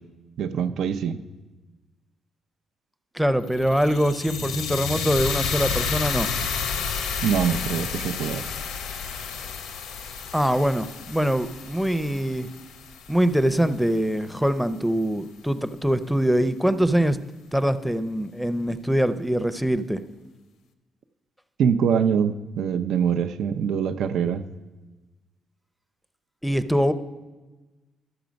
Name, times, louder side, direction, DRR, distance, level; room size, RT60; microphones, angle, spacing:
voice 1, 0.4-1.2 7.2-8.4 21.6-24.4, right 7 dB, 75° right, 9 dB, 0.5 m, -24 dB
voice 2, 3.1-6.3 10.3-12.5 13.1-17.2 17.5-20.0 26.4-26.9, equal, ahead, 12 dB, 0.6 m, -23 dB
sound 1, 3.4-13.6, left 6 dB, 85° left, 0.8 m, -31 dB
12.0 x 6.8 x 5.2 m, 1.2 s
cardioid pair, 90°, 0 cm